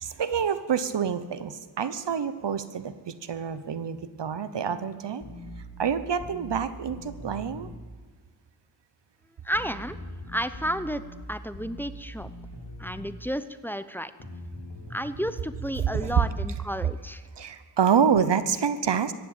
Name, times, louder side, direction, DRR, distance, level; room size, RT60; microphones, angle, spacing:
voice 1, 0.0-5.2 5.8-7.7 15.9-16.1 17.4-19.1, right 7 dB, 85° right, 13 dB, 1.0 m, -27 dB
sound 1, 5.2-7.8 9.5-13.2 14.2-15.9, left 1 dB, 70° left, 3.5 m, -42 dB
voice 2, 9.4-10.0 10.3-11.0 11.3-12.3 12.8-14.1 14.9-17.2, equal, 5° left, 13 dB, 0.8 m, -32 dB
15.0 x 10.0 x 8.8 m, 1.5 s
wide cardioid pair, 55°, 41 cm